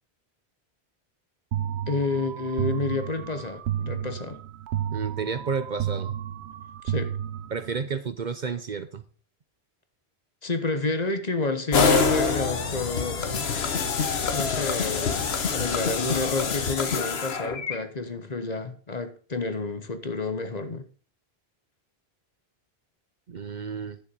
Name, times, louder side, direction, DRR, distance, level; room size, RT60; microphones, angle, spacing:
sound 1, 1.5-7.9, right 10 dB, 80° right, 0.9 m, -32 dB
voice 1, 1.9-4.4 6.8-7.1 10.4-13.5 14.3-20.9, left 3 dB, 40° left, 1.1 m, -30 dB
voice 2, 4.9-6.1 7.5-9.0 23.3-24.0, right 5 dB, 50° right, 0.7 m, -31 dB
sound 2, 11.7-17.7, left 5 dB, 70° left, 1.3 m, -26 dB
10.0 x 7.0 x 5.3 m
omnidirectional pair, 1.1 m